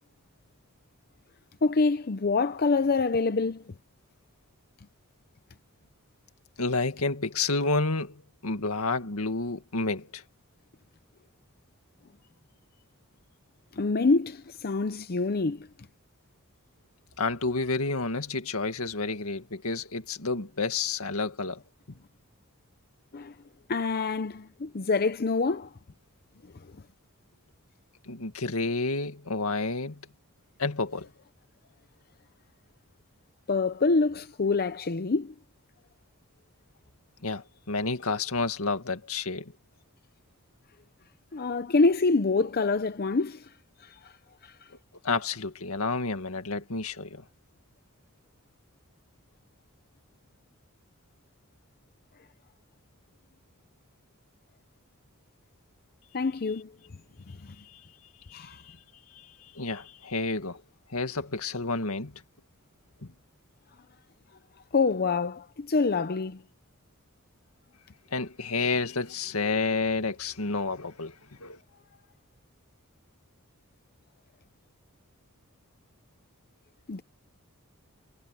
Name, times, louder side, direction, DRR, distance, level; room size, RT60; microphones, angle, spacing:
voice 1, 1.6-3.7 13.7-15.7 23.1-23.4 23.7-25.7 26.6-26.7 33.5-35.3 41.3-43.5 43.8-44.1 44.4-44.7 56.1-56.7 57.3-57.6 58.3-58.6 64.7-66.4 76.9-77.0, left 3 dB, 45° left, 0.6 m, -26 dB
voice 2, 6.6-10.2 17.2-21.6 28.1-30.1 30.6-31.1 37.2-39.5 45.0-47.2 57.6-57.8 58.3-58.8 59.1-60.6 60.9-62.2 63.0-63.1 68.1-71.1 71.4-71.6, left 3 dB, 85° left, 2.0 m, -30 dB
head